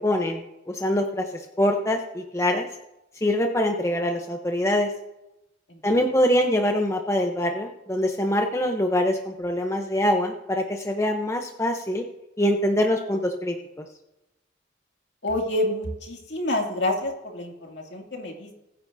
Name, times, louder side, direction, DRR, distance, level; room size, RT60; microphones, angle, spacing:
voice 1, 0.0-2.7 3.2-4.9 5.8-12.0 12.4-13.8, left 1 dB, 15° left, 3 dB, 0.8 m, -24 dB
voice 2, 15.2-18.5, left 1 dB, 65° left, 0 dB, 2.5 m, -28 dB
21.5 x 9.7 x 2.7 m, 0.93 s
head